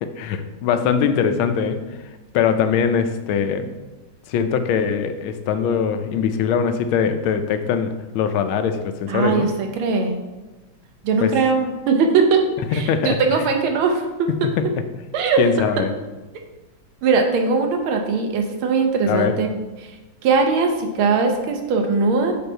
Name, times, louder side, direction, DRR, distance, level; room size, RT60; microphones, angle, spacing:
voice 1, 0.0-1.8 2.3-3.7 4.3-9.5 11.2-11.3 12.7-13.4 14.4-14.7 15.4-15.9 19.1-19.4, left 7 dB, 85° left, 8 dB, 1.4 m, -21 dB
voice 2, 9.1-10.2 11.0-12.4 12.7-14.3 15.1-15.4 17.0-19.5 20.2-22.3, right 4 dB, 85° right, 4 dB, 1.7 m, -20 dB
7.0 x 3.9 x 4.4 m, 1.1 s
omnidirectional pair, 2.2 m